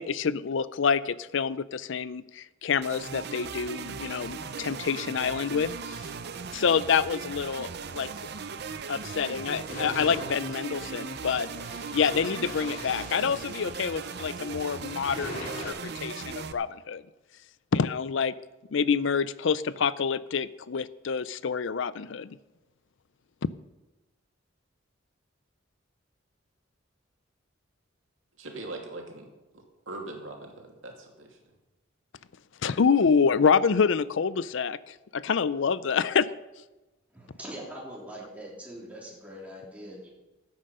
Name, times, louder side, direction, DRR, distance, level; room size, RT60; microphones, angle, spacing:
voice 1, 0.0-6.1 6.5-8.1 8.9-11.5 11.9-17.0 17.7-18.3 18.7-22.4 23.4-23.5 32.6-36.3, left 6 dB, 65° left, 17 dB, 0.5 m, -27 dB
sound 1, 2.8-16.5, right 5 dB, 55° right, 0.7 m, -38 dB
sound 2, 9.5-14.4 15.1-15.7, left 1 dB, 50° left, 3.5 m, -41 dB
voice 2, 28.4-29.3 29.9-31.4, right 2 dB, 70° right, 1 dB, 2.5 m, -40 dB
voice 3, 37.1-40.1, right 1 dB, 5° right, -5 dB, 3.6 m, -42 dB
14.0 x 8.9 x 5.5 m, 1.1 s
head